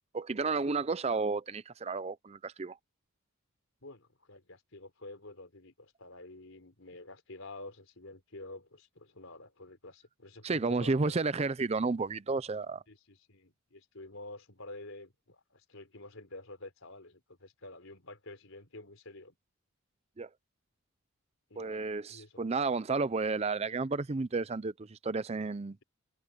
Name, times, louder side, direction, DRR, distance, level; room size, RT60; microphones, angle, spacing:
voice 1, 0.1-2.8 10.4-12.8 20.2-20.3 21.6-25.8, right 4 dB, 30° right, 0.5 m, -32 dB
voice 2, 3.8-11.1 12.9-19.4 21.5-22.4, left 2 dB, 70° left, 4.2 m, -49 dB
head